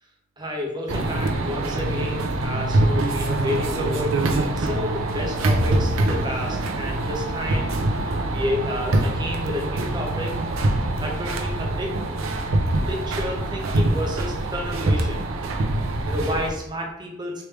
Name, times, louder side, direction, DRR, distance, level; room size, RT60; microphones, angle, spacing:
voice 1, 0.4-4.2 4.6-7.7 8.0-10.4 11.0-11.9 12.9-15.2 16.1-17.3, left 1 dB, 20° right, 0 dB, 0.7 m, -30 dB
sound 1, 0.9-16.5, right 2 dB, 75° right, 0.5 m, -24 dB
3.2 x 3.2 x 3.2 m, 0.86 s
head